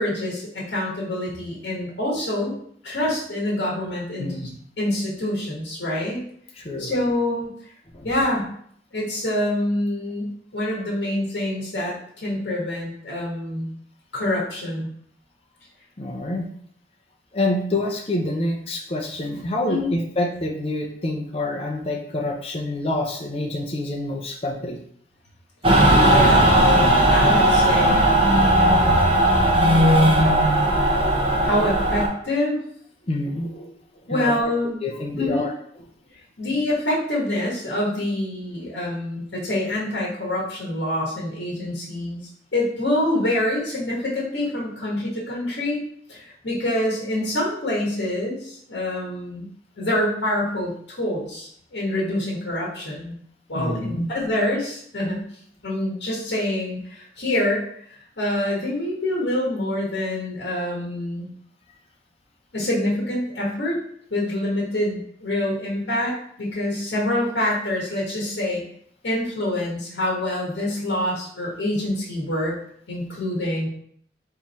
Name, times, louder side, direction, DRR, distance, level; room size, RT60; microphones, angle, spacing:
voice 1, 0.0-2.5 2.8-4.5 4.8-6.2 6.8-7.5 8.0-8.5 8.9-13.7 14.1-14.9 19.7-19.9 26.0-28.1 28.8-29.5 31.4-32.6 34.1-34.8 35.1-35.5 36.4-45.8 46.1-49.5 49.8-53.1 53.5-55.2 55.6-61.3 62.5-63.7 64.1-68.6 69.0-72.5 72.9-73.7, left 1 dB, 75° left, -4 dB, 1.5 m, -26 dB
voice 2, 4.2-4.6 6.6-6.9 7.9-8.1 16.0-16.5 17.3-24.8 33.1-33.7 34.1-34.3 34.6-35.5 53.5-54.1, left 1 dB, 30° left, 0 dB, 0.6 m, -27 dB
Mechanical fan, 25.6-32.1, right 1 dB, 30° right, 0.8 m, -17 dB
3.8 x 3.0 x 4.2 m, 0.63 s
head